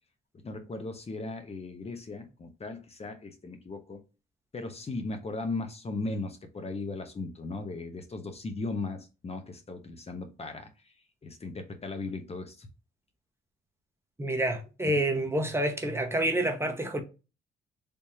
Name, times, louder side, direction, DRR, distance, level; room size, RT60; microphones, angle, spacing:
voice 1, 0.4-4.0 4.5-10.7 11.2-12.7 14.9-15.0, left 3 dB, 30° left, 0.8 m, -37 dB
voice 2, 14.2-17.0, right 1 dB, 10° right, 0.8 m, -28 dB
3.5 x 3.0 x 2.7 m
cardioid pair, 90°, 20 cm